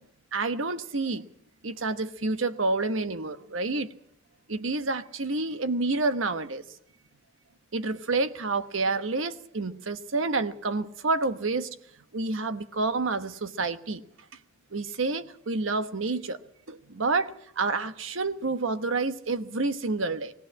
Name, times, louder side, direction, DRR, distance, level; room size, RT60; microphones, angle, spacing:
voice 1, 0.3-1.2 1.6-3.9 4.5-6.6 7.7-11.7 12.1-14.0 14.7-16.4 16.7-20.3, right 3 dB, 70° right, 1.1 m, -29 dB
18.5 x 17.0 x 8.7 m
head